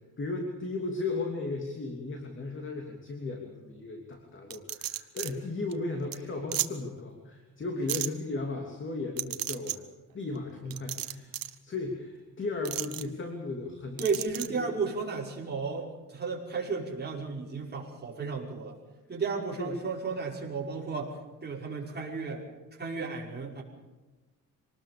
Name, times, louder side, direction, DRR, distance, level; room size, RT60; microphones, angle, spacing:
voice 1, 0.2-9.8 10.1-14.0 14.5-14.7 19.6-19.8, left 3 dB, 35° left, 2 dB, 3.0 m, -35 dB
sound 1, 4.5-5.3 5.7-5.8 6.1-6.2 6.5-6.7 7.9-8.1 9.2-9.8 10.7-11.6 12.7-13.0 14.0-14.5, right 13 dB, 85° right, 1.2 m, -33 dB
voice 2, 14.0-18.8 19.1-21.2 21.4-22.4 22.7-23.6, right 4 dB, 30° right, -2 dB, 5.7 m, -33 dB
25.5 x 19.5 x 6.9 m, 1.2 s
cardioid pair, 135°, 34 cm